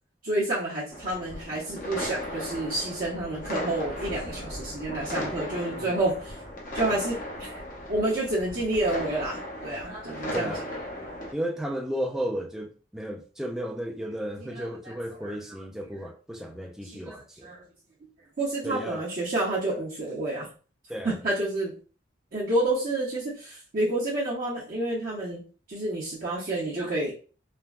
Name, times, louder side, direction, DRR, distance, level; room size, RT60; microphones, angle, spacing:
voice 1, 0.2-6.4 6.7-7.6 7.9-10.5 14.5-14.9 15.2-15.4 16.8-17.6 18.4-20.5 21.0-21.7 22.3-25.4 25.7-27.1, right 2 dB, 50° right, 0.7 m, -29 dB
sound 1, 0.9-11.3, left 1 dB, 45° left, 0.7 m, -36 dB
voice 2, 10.3-10.7 11.3-17.5 18.6-19.1 20.9-21.2, equal, 5° right, 0.3 m, -34 dB
3.3 x 2.2 x 2.4 m
head